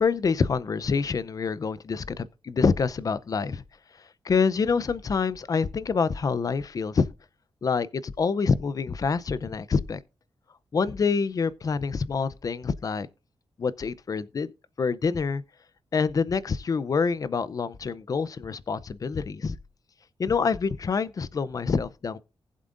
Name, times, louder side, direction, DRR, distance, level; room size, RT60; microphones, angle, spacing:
voice 1, 0.0-3.6 4.2-7.1 7.6-10.0 10.7-13.1 13.6-14.5 14.8-15.4 15.9-19.6 20.2-22.2, left 5 dB, 40° left, 0.5 m, -26 dB
19.5 x 7.5 x 2.5 m
wide cardioid pair, 145°, 9 cm